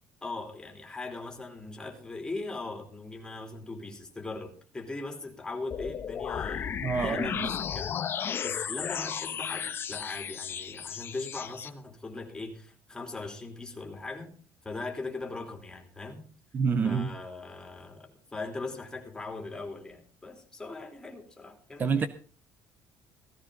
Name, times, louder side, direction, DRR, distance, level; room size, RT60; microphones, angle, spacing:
voice 1, 0.2-14.3 14.6-16.2 16.8-22.1, left 3 dB, 10° left, 3 dB, 3.3 m, -40 dB
sound 1, 5.7-11.7, left 8 dB, 35° left, 1.0 m, -34 dB
voice 2, 6.8-7.5 16.5-17.1 21.8-22.1, right 5 dB, 30° right, 12 dB, 0.7 m, -27 dB
16.5 x 15.5 x 3.9 m, 0.39 s
cardioid pair, 150°, 7 cm